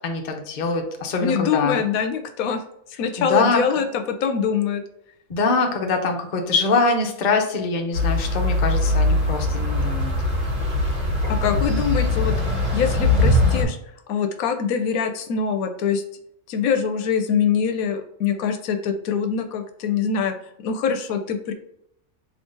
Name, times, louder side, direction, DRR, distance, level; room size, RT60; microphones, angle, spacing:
voice 1, 0.0-1.8 3.2-3.6 5.3-10.1 11.5-11.6, left 3 dB, 45° left, 3 dB, 0.7 m, -23 dB
voice 2, 1.2-2.6 3.0-4.8 11.3-12.3 12.7-13.8 14.1-16.0 16.5-20.3 20.6-21.5, left 6 dB, 80° left, 6 dB, 1.0 m, -24 dB
sound 1, 7.9-13.6, left 2 dB, 60° right, 1.7 m, -21 dB
3.7 x 3.0 x 3.8 m, 0.73 s
omnidirectional pair, 1.5 m